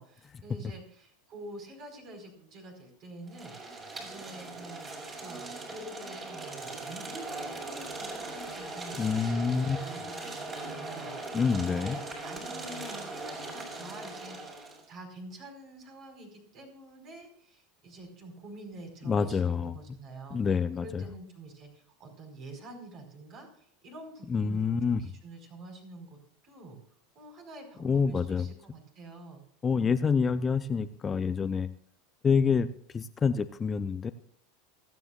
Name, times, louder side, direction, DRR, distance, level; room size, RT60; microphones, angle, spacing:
voice 1, 0.0-4.9 5.2-20.4 20.8-26.2 26.4-26.8 27.1-30.0, right 2 dB, 40° right, 3 dB, 4.9 m, -47 dB
sound 1, 3.3-14.8, right 2 dB, 25° right, 6.0 m, -40 dB
voice 2, 9.0-9.9 11.3-12.0 19.1-19.8 20.3-21.0 24.3-25.1 27.8-28.5 29.6-31.7 32.2-32.7 32.9-34.1, left 5 dB, 25° left, 12 dB, 0.6 m, -27 dB
27.5 x 9.2 x 2.5 m, 0.63 s
figure-of-eight pair, 80°, 0 cm